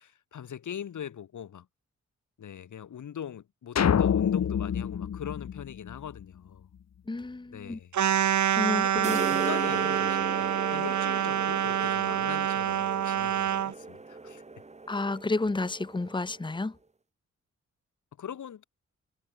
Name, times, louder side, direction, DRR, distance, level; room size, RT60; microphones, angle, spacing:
voice 1, 0.0-1.7 2.4-6.7 7.5-7.9 8.8-14.4 18.2-18.6, left 9 dB, 90° left, 6.7 m, -41 dB
sound 1, 3.8-6.2, left 8 dB, 60° left, 2.1 m, -26 dB
voice 2, 7.1-7.8 8.2-9.3 14.9-16.8, left 3 dB, 15° left, 1.8 m, -31 dB
sound 2, 7.9-13.7, right 10 dB, 75° right, 1.2 m, -27 dB
sound 3, 9.0-16.6, right 3 dB, 25° right, 5.0 m, -38 dB
wide cardioid pair, 155°, 29 cm